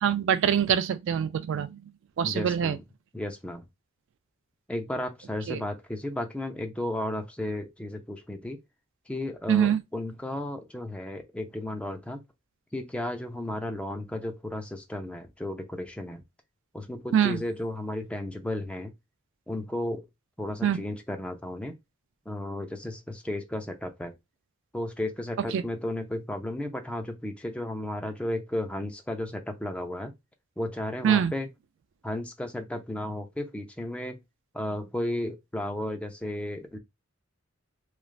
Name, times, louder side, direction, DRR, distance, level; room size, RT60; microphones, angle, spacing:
voice 1, 0.0-1.8 2.2-2.8 5.5-5.6 9.5-9.8 17.1-17.4 20.6-20.8 25.5-25.6 31.0-31.3, right 8 dB, 60° right, 0.3 m, -24 dB
voice 2, 2.2-2.8 3.1-3.6 4.7-8.6 9.1-12.2 12.7-16.2 16.7-18.9 19.5-20.1 20.4-21.7 22.3-24.1 24.7-30.1 30.6-31.5 32.0-34.2 34.5-36.8, left 1 dB, 5° left, 0.4 m, -34 dB
3.2 x 2.3 x 2.4 m
head